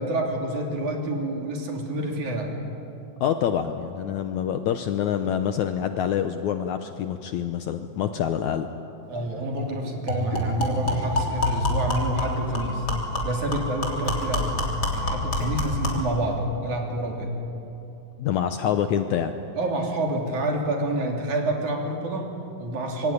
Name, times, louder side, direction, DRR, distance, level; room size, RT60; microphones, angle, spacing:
voice 1, 0.0-2.5 9.1-12.9 13.2-14.6 14.9-17.3 19.6-23.1, right 1 dB, 55° right, 1 dB, 4.5 m, -28 dB
voice 2, 3.2-8.7 18.2-19.4, left 9 dB, 70° left, 8 dB, 1.9 m, -26 dB
sound 1, 9.1-9.2 9.6-9.7 10.1-16.1, left 1 dB, 30° left, 3.7 m, -27 dB
25.5 x 23.5 x 9.7 m, 2.8 s
omnidirectional pair, 4.1 m